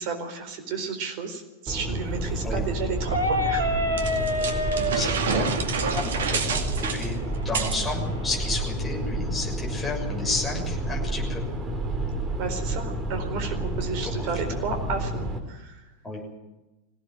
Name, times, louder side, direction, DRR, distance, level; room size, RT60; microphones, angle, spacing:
voice 1, 0.0-3.7 12.4-15.9, right 4 dB, 45° right, 6 dB, 4.3 m, -32 dB
sound 1, 1.7-15.4, right 1 dB, 20° right, 3.5 m, -30 dB
sound 2, 3.0-8.6, equal, 85° left, 3.3 m, -30 dB
sound 3, 4.0-7.9, right 5 dB, 60° right, 2.2 m, -28 dB
voice 2, 4.9-5.5 5.9-11.4 14.0-14.1 14.4-14.6 16.0-16.2, left 2 dB, 10° left, -2 dB, 6.7 m, -32 dB
22.0 x 17.0 x 7.6 m, 1.1 s
figure-of-eight pair, 90°, 0 cm